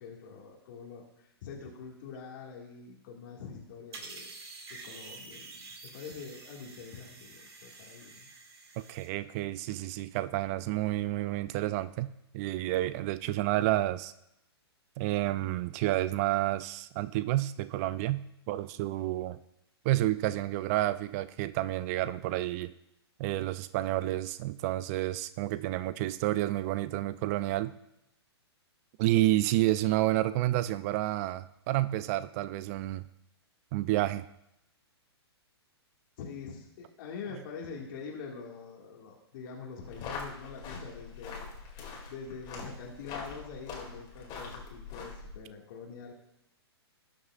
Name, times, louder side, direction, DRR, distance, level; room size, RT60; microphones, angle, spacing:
voice 1, 0.0-4.3 4.7-8.3 36.2-46.1, left 5 dB, 50° left, -1 dB, 1.9 m, -45 dB
sound 1, 3.9-9.1, right 3 dB, 70° right, 2.0 m, -48 dB
voice 2, 8.8-14.1 15.0-19.4 19.8-22.7 23.2-27.7 29.0-33.1 33.7-34.3, right 16 dB, 35° right, 15 dB, 0.3 m, -30 dB
sound 2, 39.8-45.4, left 4 dB, 30° left, 2.3 m, -43 dB
18.5 x 6.4 x 2.4 m, 0.81 s
hypercardioid pair, 120°, 14 cm